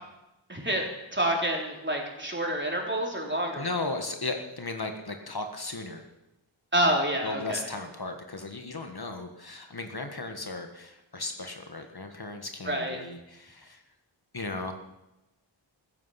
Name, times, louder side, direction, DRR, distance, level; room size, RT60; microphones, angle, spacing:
voice 1, 0.5-3.7 6.7-7.7 12.7-13.0, right 1 dB, 25° right, 0 dB, 4.0 m, -28 dB
voice 2, 3.6-6.1 7.2-13.8 14.3-14.7, left 2 dB, 55° left, 5 dB, 1.6 m, -36 dB
15.0 x 14.5 x 5.9 m, 0.94 s
wide cardioid pair, 55°, 46 cm